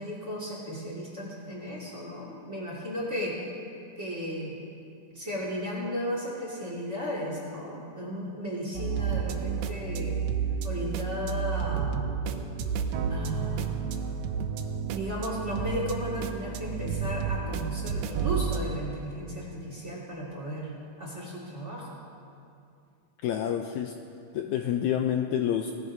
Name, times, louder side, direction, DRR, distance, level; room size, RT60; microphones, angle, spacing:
voice 1, 0.0-3.4 4.0-4.6 5.1-10.2 10.6-12.1 13.1-14.1 14.9-20.7 21.0-21.9, equal, 25° right, -5 dB, 1.9 m, -35 dB
sound 1, 8.7-18.6, right 6 dB, 80° right, 2.3 m, -31 dB
voice 2, 23.2-23.9 24.3-25.7, left 10 dB, 90° left, 5 dB, 1.6 m, -28 dB
19.0 x 14.5 x 2.6 m, 2.5 s
omnidirectional pair, 3.9 m